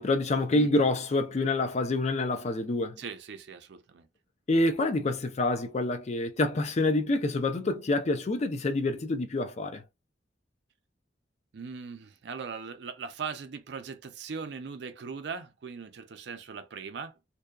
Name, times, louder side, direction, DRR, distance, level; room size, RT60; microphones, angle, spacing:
voice 1, 0.0-3.0 4.5-9.8, left 2 dB, 40° left, 0.4 m, -27 dB
voice 2, 0.5-0.9 3.0-4.1 11.5-17.1, right 5 dB, 65° right, 0.5 m, -40 dB
2.6 x 2.2 x 2.3 m
head